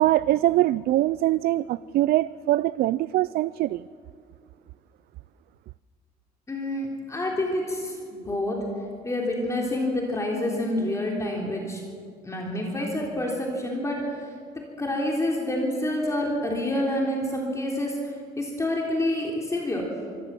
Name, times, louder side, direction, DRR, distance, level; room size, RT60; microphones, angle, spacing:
voice 1, 0.0-3.8, right 15 dB, 65° right, 0.4 m, -23 dB
voice 2, 6.5-8.6 9.0-11.8 12.2-14.3 14.5-19.9, left 1 dB, 15° left, 3.5 m, -28 dB
25.0 x 14.0 x 7.6 m
cardioid pair, 110°, 17 cm